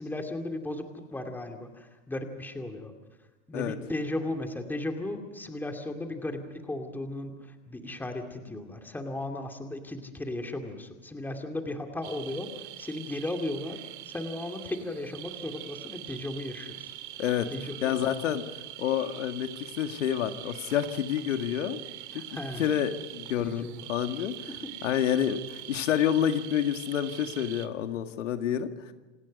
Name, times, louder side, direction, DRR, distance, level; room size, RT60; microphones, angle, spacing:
voice 1, 0.0-2.9 3.5-16.9 17.5-18.1 22.1-22.8 23.4-23.9 24.5-24.7, left 1 dB, 5° left, 4 dB, 2.5 m, -36 dB
sound 1, 12.0-27.7, right 15 dB, 65° right, 2.1 m, -43 dB
voice 2, 17.8-18.4 18.8-21.8 22.1-22.2 22.6-24.3 24.8-28.7, left 10 dB, 85° left, 7 dB, 2.1 m, -28 dB
28.0 x 19.5 x 5.4 m, 1.2 s
supercardioid pair, 140°, 36 cm